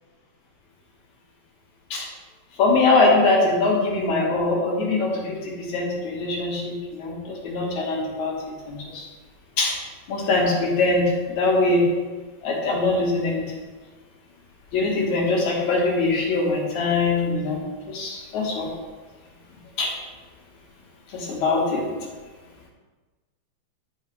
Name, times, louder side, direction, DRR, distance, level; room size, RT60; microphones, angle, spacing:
voice 1, 2.6-9.1 9.6-9.7 10.1-11.9 12.4-13.5 14.7-18.7 19.8-19.9 21.1-21.9, left 3 dB, 75° left, -3 dB, 3.0 m, -22 dB
12.0 x 5.6 x 3.4 m, 1.3 s
omnidirectional pair, 3.3 m